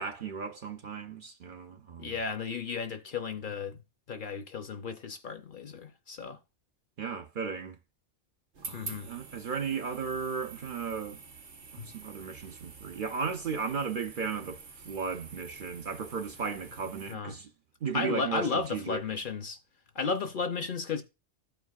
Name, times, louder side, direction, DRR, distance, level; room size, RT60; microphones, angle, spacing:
voice 1, 0.0-2.2 7.0-7.8 8.6-11.2 11.7-17.5 17.8-19.0, right 5 dB, 55° right, 0.7 m, -35 dB
voice 2, 2.0-3.8 4.1-6.4 8.7-9.1 11.8-11.9 17.1-17.3 17.9-19.6 19.9-21.0, left 5 dB, 55° left, 0.7 m, -34 dB
sound 1, 8.5-17.1, right 4 dB, 75° right, 1.3 m, -48 dB
13.5 x 4.6 x 2.3 m
omnidirectional pair, 1.2 m